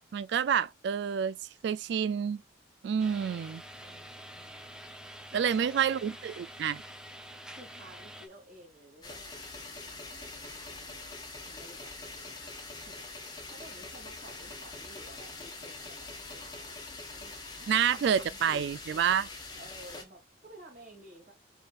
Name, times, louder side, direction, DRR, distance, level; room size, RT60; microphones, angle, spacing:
voice 1, 0.0-1.4 1.6-2.4 2.8-3.6 5.3-6.8 17.7-19.3, right 8 dB, 60° right, 0.3 m, -28 dB
sound 1, 3.0-8.3, equal, 5° right, 0.7 m, -47 dB
voice 2, 3.1-4.8 5.3-5.9 7.5-11.2 11.5-18.7 19.6-21.3, right 1 dB, 45° right, 2.7 m, -54 dB
sound 2, 9.0-20.0, left 3 dB, 20° left, 1.4 m, -44 dB
4.9 x 4.3 x 2.4 m
head